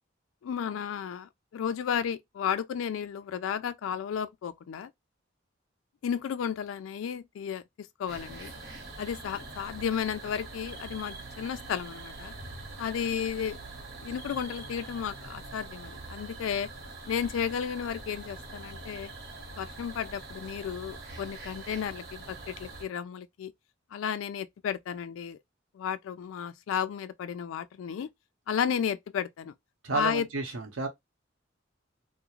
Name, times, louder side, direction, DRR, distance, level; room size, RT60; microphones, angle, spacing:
voice 1, 0.4-4.9 6.0-8.5 9.0-12.3 12.8-13.6 14.0-16.7 17.1-19.1 19.6-23.5 23.9-25.4 25.7-28.1 28.5-29.5 29.9-30.3, left 8 dB, 90° left, 0.3 m, -33 dB
sound 1, 8.1-22.8, right 3 dB, 55° right, 0.9 m, -44 dB
voice 2, 29.8-30.9, right 3 dB, 85° right, 0.8 m, -31 dB
2.4 x 2.1 x 2.8 m
head